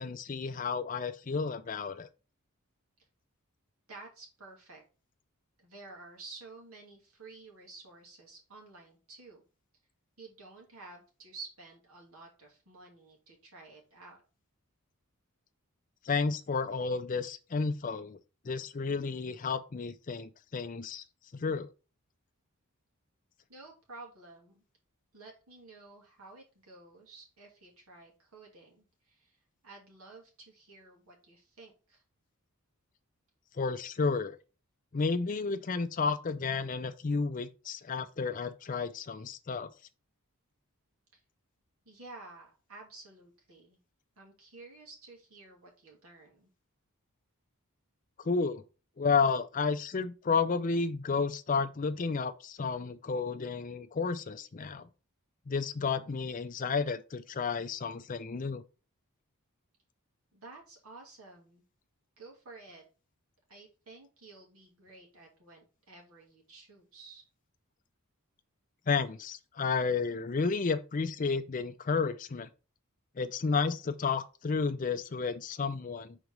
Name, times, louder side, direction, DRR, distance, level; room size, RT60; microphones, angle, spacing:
voice 1, 0.0-2.1 16.0-18.2 18.4-21.0 21.3-21.7 33.6-34.4 34.9-39.7 48.2-48.6 49.0-54.9 55.5-58.6 68.9-72.5 73.2-76.2, left 4 dB, 35° left, 0.4 m, -32 dB
voice 2, 3.9-4.8 5.6-9.4 10.2-14.2 23.5-24.6 25.1-32.0 41.1-41.2 41.8-43.8 44.2-46.5 60.3-61.6 62.2-62.8 63.5-67.2, right 3 dB, 75° right, 2.6 m, -52 dB
4.7 x 4.0 x 5.1 m
head